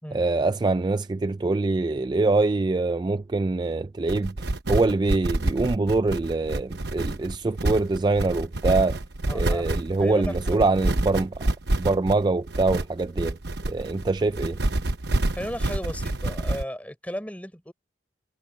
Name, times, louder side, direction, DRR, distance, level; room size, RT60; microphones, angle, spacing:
voice 1, 0.1-4.3 4.7-9.0 9.3-11.4 11.8-13.4 13.7-14.6, right 3 dB, 25° right, 0.3 m, -24 dB
sound 1, 4.1-16.6, right 2 dB, 65° right, 1.0 m, -27 dB
voice 2, 9.2-9.7 10.0-10.6 15.3-17.7, equal, 10° left, 4.0 m, -35 dB
head